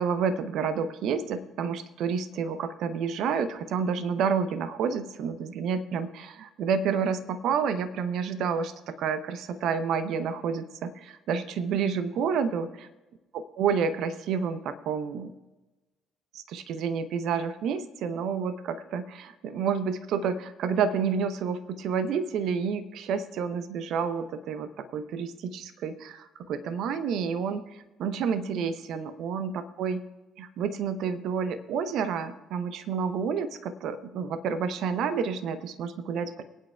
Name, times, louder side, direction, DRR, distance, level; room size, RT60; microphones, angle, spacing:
voice 1, 0.0-12.9 13.3-15.3 16.3-30.0 30.4-36.4, right 6 dB, 60° right, 11 dB, 0.8 m, -29 dB
23.5 x 9.2 x 2.3 m, 1.1 s
figure-of-eight pair, 50°, 0 cm